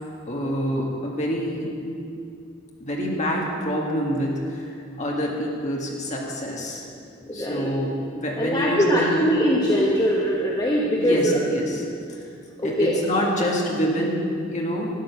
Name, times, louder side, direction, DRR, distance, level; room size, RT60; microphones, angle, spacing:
voice 1, 0.3-1.8 2.8-6.9 7.3-9.2 11.0-11.8 12.6-15.0, equal, 35° left, -2 dB, 1.9 m, -26 dB
voice 2, 7.3-7.7 8.4-11.4 12.6-13.3, equal, 20° left, -4 dB, 1.1 m, -22 dB
13.0 x 9.2 x 6.0 m, 2.5 s
head